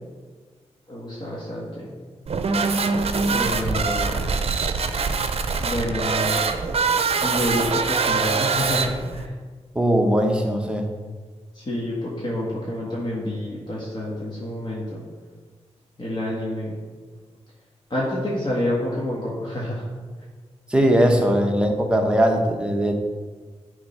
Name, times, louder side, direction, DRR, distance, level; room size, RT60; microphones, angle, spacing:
voice 1, 0.9-1.9 3.2-4.2 5.6-6.4 7.2-9.3 11.5-15.0 16.0-16.8 17.9-19.9 21.2-21.3, left 1 dB, 40° left, -6 dB, 1.6 m, -28 dB
sound 1, 2.3-9.3, right 4 dB, 60° right, 0.6 m, -23 dB
voice 2, 9.7-10.8 20.7-22.9, equal, 10° right, 2 dB, 1.0 m, -20 dB
10.5 x 3.7 x 5.6 m, 1.5 s
wide cardioid pair, 120°, 12 cm